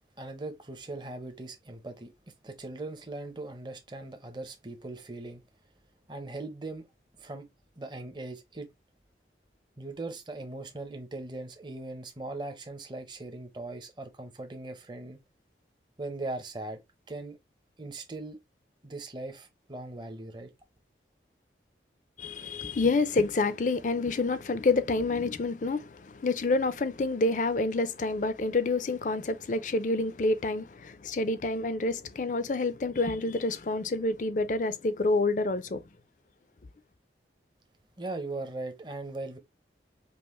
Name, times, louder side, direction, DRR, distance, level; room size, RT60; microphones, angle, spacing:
voice 1, 0.2-2.1 2.4-5.4 6.1-6.9 7.2-7.5 7.8-8.7 9.8-15.2 16.0-16.8 17.1-17.4 17.8-18.4 18.8-20.5 38.0-39.4, right 2 dB, 25° right, 0.7 m, -39 dB
voice 2, 22.2-35.8, left 3 dB, 45° left, 0.4 m, -28 dB
5.3 x 2.0 x 3.0 m
head